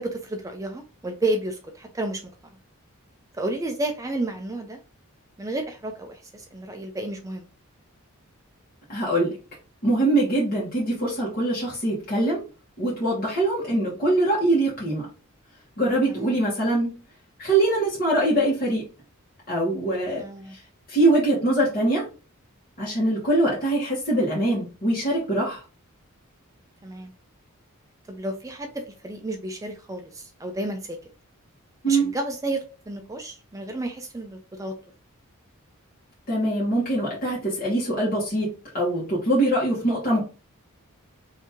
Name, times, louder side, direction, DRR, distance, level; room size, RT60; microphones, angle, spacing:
voice 1, 0.0-2.2 3.3-4.8 5.4-7.5 13.7-13.9 16.1-16.4 20.2-20.6 26.8-27.1 28.1-31.0 31.9-34.7, right 2 dB, 15° right, 5 dB, 0.4 m, -31 dB
voice 2, 8.9-9.4 9.8-12.4 12.8-15.1 15.8-16.9 17.4-18.8 19.5-20.2 20.9-22.0 22.8-25.6 31.8-32.1 36.3-38.5 38.7-40.2, right 1 dB, 40° left, -6 dB, 1.2 m, -23 dB
2.8 x 2.7 x 3.4 m, 0.33 s
head